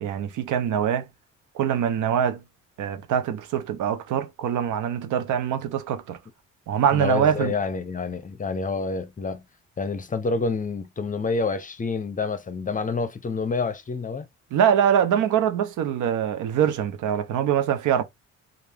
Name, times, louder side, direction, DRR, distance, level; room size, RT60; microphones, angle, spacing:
voice 1, 0.0-1.0 1.5-2.4 2.8-6.2 6.7-7.5 14.5-18.0, right 9 dB, 80° right, 0.7 m, -23 dB
voice 2, 6.9-9.4 9.8-14.3, left 4 dB, 25° left, 0.7 m, -28 dB
3.3 x 2.5 x 3.4 m
cardioid pair, 90°, 30 cm